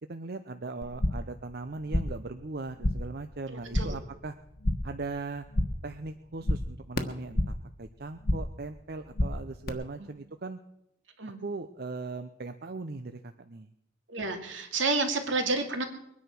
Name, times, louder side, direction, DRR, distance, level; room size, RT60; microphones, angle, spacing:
voice 1, 0.1-4.3 4.8-5.4 5.8-10.6 11.4-13.7, right 3 dB, 55° right, 8 dB, 0.7 m, -39 dB
sound 1, 0.8-1.4 1.6-2.3 2.5-3.2 3.5-4.1 4.4-5.0 5.3-5.9 6.2-7.7 8.0-8.6 8.9-9.7, left 1 dB, 50° left, 1.4 m, -31 dB
voice 2, 3.5-4.0 10.0-10.1 11.2-11.4 14.1-15.8, right 3 dB, 80° right, 5 dB, 2.5 m, -30 dB
22.5 x 9.9 x 6.0 m, 0.79 s
head